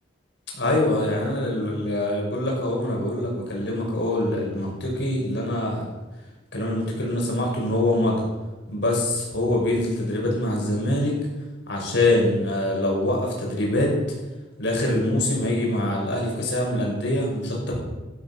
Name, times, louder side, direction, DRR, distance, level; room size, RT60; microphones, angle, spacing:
voice 1, 0.6-5.9 6.5-8.2 8.7-11.1 11.7-13.9 14.6-17.8, left 1 dB, 60° left, -2 dB, 6.4 m, -24 dB
17.0 x 12.0 x 6.5 m, 1.2 s
head